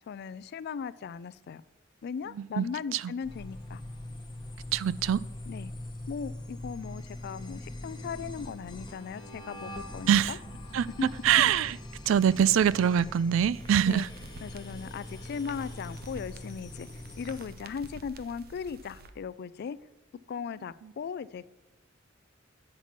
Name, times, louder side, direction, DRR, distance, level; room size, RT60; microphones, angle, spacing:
voice 1, 0.0-1.6 2.0-3.8 5.5-5.7 6.1-10.4 11.0-11.4 13.8-14.1 14.4-16.9 17.2-19.8 20.3-21.5, left 6 dB, 55° left, 0.3 m, -38 dB
sound 1, 3.2-17.6, left 1 dB, 20° left, 1.0 m, -43 dB
voice 2, 4.7-5.2 10.1-10.4 10.7-10.9 11.2-11.8 12.1-14.1, right 9 dB, 75° right, 0.3 m, -24 dB
sound 2, 13.5-19.1, right 2 dB, 50° right, 0.7 m, -49 dB
8.8 x 5.9 x 5.9 m
head